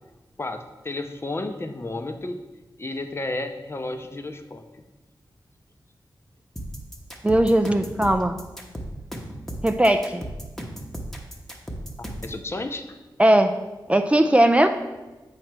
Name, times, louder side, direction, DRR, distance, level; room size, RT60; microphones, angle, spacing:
voice 1, 0.4-2.4 2.8-4.6 12.2-12.8, left 2 dB, 30° left, 6 dB, 0.6 m, -32 dB
sound 1, 6.6-12.4, equal, 5° left, 0.9 m, -35 dB
voice 2, 7.2-8.4 9.6-10.2 13.2-13.5 13.9-14.7, right 1 dB, 15° right, 6 dB, 0.3 m, -18 dB
7.8 x 3.2 x 6.0 m, 1.1 s
wide cardioid pair, 95°, 8 cm